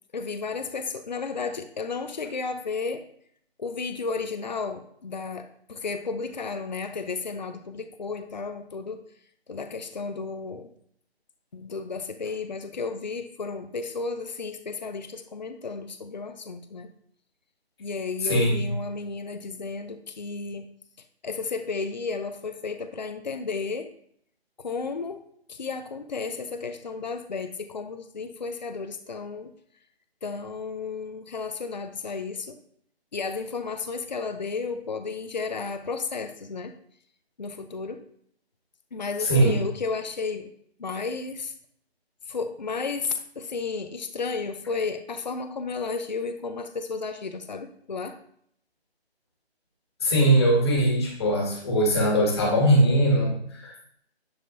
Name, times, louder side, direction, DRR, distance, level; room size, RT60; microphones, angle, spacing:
voice 1, 0.1-3.0 3.6-9.0 9.5-10.7 11.5-16.9 17.8-20.7 21.2-23.9 24.6-25.2 25.5-29.5 30.2-32.6 33.1-36.7 37.4-38.0 38.9-40.5 40.8-41.5 42.3-48.2, left 4 dB, 45° left, 8 dB, 0.7 m, -33 dB
voice 2, 18.2-18.7 39.2-39.6 50.0-53.7, right 1 dB, 25° left, -1 dB, 2.0 m, -21 dB
10.0 x 7.5 x 2.7 m, 0.66 s
figure-of-eight pair, 160°, 32 cm